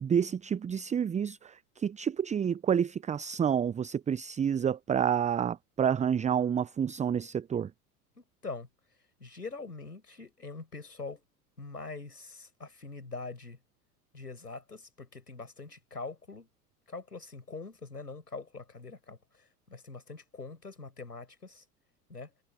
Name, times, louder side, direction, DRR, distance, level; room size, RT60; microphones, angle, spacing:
voice 1, 0.0-7.7, right 8 dB, 15° right, 0.8 m, -29 dB
voice 2, 8.2-8.7 9.2-11.2 11.6-13.6 14.1-16.5 16.9-19.2 19.7-21.6 22.1-22.3, left 3 dB, 85° left, 6.4 m, -43 dB
figure-of-eight pair, 80°, 46 cm